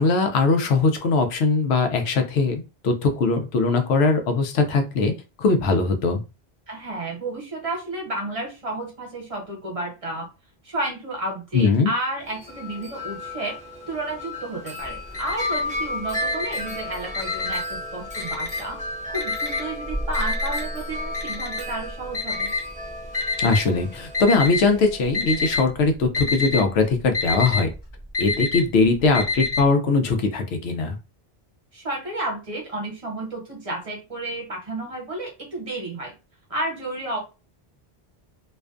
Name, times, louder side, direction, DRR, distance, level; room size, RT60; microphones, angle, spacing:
voice 1, 0.0-5.1 5.4-6.2 11.5-11.9 23.4-27.7 28.2-31.0, left 3 dB, 90° left, 6 dB, 0.8 m, -21 dB
voice 2, 6.7-10.3 10.6-13.6 13.9-18.8 19.1-22.5 31.7-36.1 36.5-37.2, right 2 dB, 35° right, -1 dB, 1.0 m, -31 dB
Wind chime, 12.2-25.5, left 1 dB, 10° right, 0.5 m, -34 dB
Alarm, 14.8-15.8 16.1-17.8 18.1-18.8 19.1-23.6 24.1-24.8 25.0-25.7 25.9-29.6, left 3 dB, 30° left, 0.7 m, -27 dB
2.5 x 2.2 x 2.4 m, 0.29 s
omnidirectional pair, 1.0 m